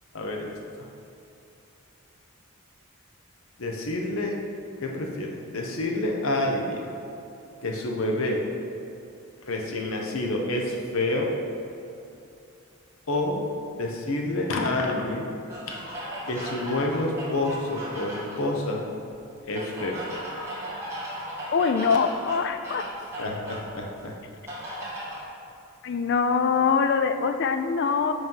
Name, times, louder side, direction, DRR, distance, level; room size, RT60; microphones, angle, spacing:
voice 1, 0.1-0.8 3.6-4.4 4.8-6.8 7.6-8.4 9.5-11.4 13.1-13.4 13.8-15.3 15.8-15.9 16.3-18.9 19.5-20.0 23.2-24.1, left 2 dB, 65° left, 0 dB, 0.7 m, -28 dB
sound 1, 15.5-18.4 19.5-23.7 24.5-25.2, equal, 10° right, 1.1 m, -36 dB
voice 2, 21.5-22.9 25.8-28.1, left 5 dB, 50° left, 9 dB, 0.3 m, -23 dB
7.7 x 3.1 x 5.4 m, 2.7 s
head